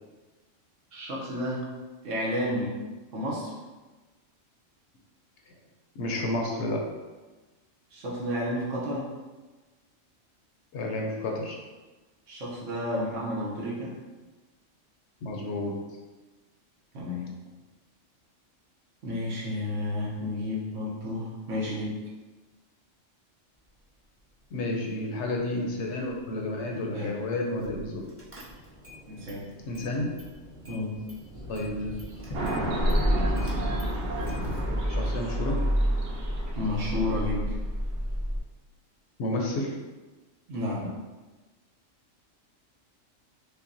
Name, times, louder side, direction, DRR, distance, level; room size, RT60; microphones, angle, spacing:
voice 1, 0.9-1.6 2.0-2.8 3.1-3.5 7.9-9.1 12.3-14.0 16.9-17.3 19.0-21.9 26.9-27.1 29.1-29.5 30.7-31.0 36.5-37.5 40.5-40.9, left 1 dB, 75° right, -5 dB, 1.1 m, -31 dB
voice 2, 6.0-6.9 10.7-11.5 15.2-15.9 24.5-28.1 29.7-30.2 31.5-32.1 32.8-33.1 34.3-34.4 34.9-35.7 39.2-39.8, left 1 dB, 70° left, 0 dB, 0.8 m, -31 dB
Car / Engine starting, 27.6-27.9 28.2-29.0 29.3-30.3 30.6-38.4, equal, 20° right, 0.3 m, -30 dB
sound 1, 28.1-34.9, equal, 35° left, 0.5 m, -40 dB
sound 2, 32.3-37.5, right 2 dB, 60° right, 0.8 m, -35 dB
5.4 x 2.1 x 2.6 m, 1.2 s
omnidirectional pair, 1.3 m